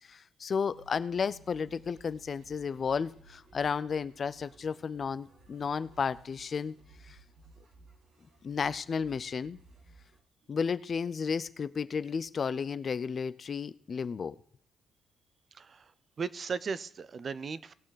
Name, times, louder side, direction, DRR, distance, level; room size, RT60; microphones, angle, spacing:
voice 1, 0.1-6.7 7.1-7.2 8.4-9.6 10.5-14.4, left 6 dB, 45° left, 16 dB, 0.5 m, -33 dB
sound 1, 0.7-10.2, right 3 dB, 65° right, 2.6 m, -58 dB
voice 2, 15.5-15.9 16.2-17.7, right 5 dB, 45° right, 17 dB, 0.5 m, -36 dB
19.0 x 6.3 x 4.0 m, 0.62 s
cardioid pair, 90°, 0 cm